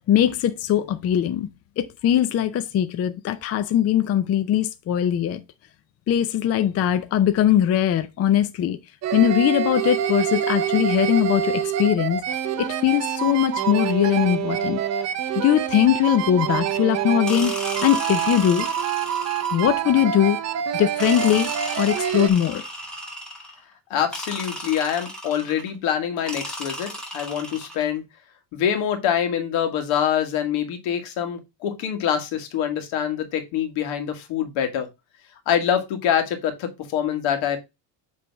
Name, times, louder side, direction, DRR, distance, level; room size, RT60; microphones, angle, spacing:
voice 1, 0.1-1.5 1.8-5.4 6.1-8.8 9.1-12.2 12.8-14.8 15.3-17.5 17.8-18.7 19.5-20.4 20.7-21.5 21.8-22.6, left 11 dB, 35° left, 0.5 m, -21 dB
sound 1, 9.0-22.3, right 9 dB, 35° right, 0.5 m, -26 dB
sound 2, 17.3-19.8 21.0-23.6 24.1-25.7 26.3-27.9, equal, ahead, 1.9 m, -34 dB
voice 2, 23.9-28.0 28.5-34.9 35.5-37.6, left 9 dB, 75° left, 1.8 m, -25 dB
7.8 x 3.4 x 4.5 m
cardioid pair, 160°, 47 cm